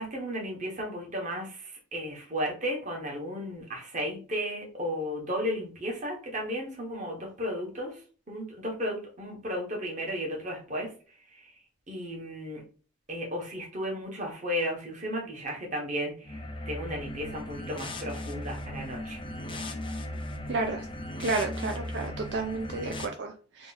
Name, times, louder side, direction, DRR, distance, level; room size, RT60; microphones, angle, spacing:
voice 1, 0.0-8.0 8.3-10.9 11.3-11.5 11.9-12.6 13.1-16.4 16.7-19.2, equal, 40° right, 0 dB, 1.1 m, -34 dB
sound 1, 16.2-23.1, left 1 dB, 25° left, 0.4 m, -37 dB
voice 2, 20.5-20.8 21.2-23.7, right 3 dB, 60° right, 4 dB, 0.4 m, -31 dB
3.0 x 2.4 x 3.9 m, 0.39 s
head